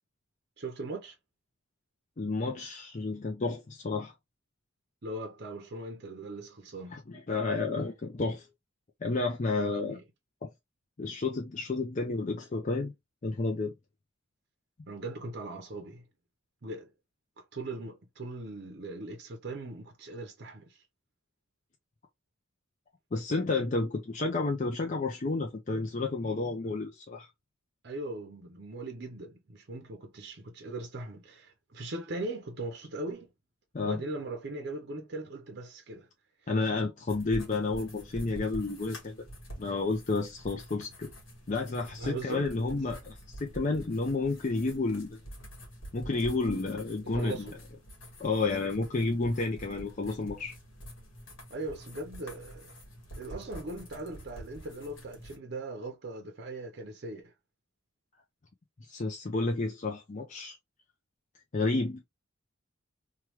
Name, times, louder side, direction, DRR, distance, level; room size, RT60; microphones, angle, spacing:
voice 1, 0.6-1.1 5.0-6.9 9.6-10.0 14.9-16.0 16.6-16.9 17.4-20.8 27.8-33.3 33.8-36.1 42.0-42.5 47.1-47.5 51.5-52.7 53.2-57.3, right 2 dB, 50° right, 0.6 m, -39 dB
voice 2, 2.2-4.1 6.9-8.5 9.0-10.0 10.4-10.5 11.0-12.9 13.2-13.7 23.1-27.3 33.7-34.0 36.5-39.2 39.6-41.1 41.5-45.2 45.9-47.5 48.2-50.5 58.9-60.6 61.5-62.0, left 3 dB, 35° left, 0.5 m, -31 dB
sound 1, 37.1-55.4, equal, 65° left, 1.4 m, -47 dB
3.1 x 2.3 x 2.9 m
head